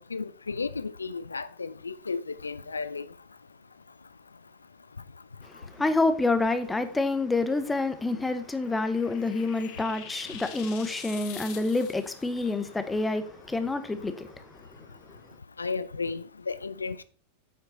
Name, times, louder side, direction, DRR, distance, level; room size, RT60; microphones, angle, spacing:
voice 1, 0.1-3.0 15.6-17.0, left 4 dB, 75° left, 0.3 m, -33 dB
voice 2, 5.4-14.6, left 2 dB, 10° left, 0.9 m, -28 dB
sound 1, 8.1-12.3, left 9 dB, 45° left, 1.1 m, -45 dB
8.1 x 5.8 x 4.1 m
figure-of-eight pair, 90°, 0 cm